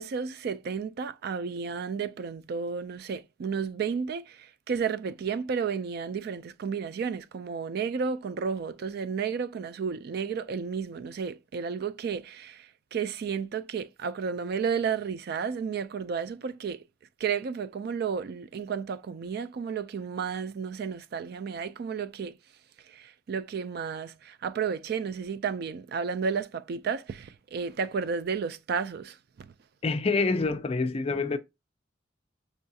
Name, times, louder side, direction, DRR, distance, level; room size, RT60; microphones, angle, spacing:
voice 1, 0.0-16.8 17.2-22.4 22.9-29.2, right 6 dB, 55° right, 0.3 m, -32 dB
voice 2, 29.8-31.4, left 3 dB, 30° left, 0.4 m, -26 dB
5.3 x 2.4 x 2.7 m
head